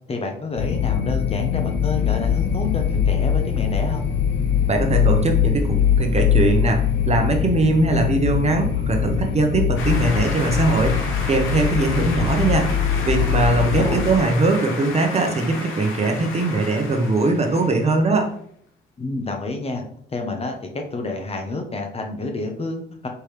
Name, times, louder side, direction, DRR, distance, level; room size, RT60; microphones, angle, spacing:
voice 1, 0.1-4.1 13.6-14.0 19.0-23.1, left 3 dB, 30° left, 3 dB, 0.7 m, -29 dB
sound 1, 0.6-14.2, left 8 dB, 70° left, 0.7 m, -22 dB
voice 2, 4.7-18.3, right 2 dB, 35° right, 4 dB, 0.9 m, -21 dB
sound 2, 9.8-18.1, left 3 dB, 90° left, 1.0 m, -32 dB
4.4 x 3.4 x 3.3 m, 0.64 s
cardioid pair, 90°, 20 cm